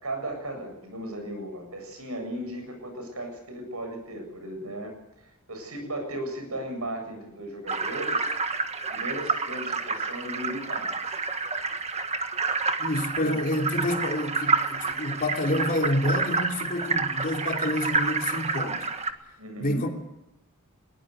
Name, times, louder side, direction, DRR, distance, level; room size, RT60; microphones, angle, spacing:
voice 1, 0.0-8.3 8.9-11.1 13.2-13.4 19.4-19.9, right 1 dB, 85° right, 7.8 m, -36 dB
sound 1, 7.7-19.1, right 4 dB, 30° right, 1.6 m, -29 dB
voice 2, 12.8-18.9 19.6-19.9, left 1 dB, 40° left, 3.0 m, -28 dB
21.5 x 19.0 x 8.0 m
head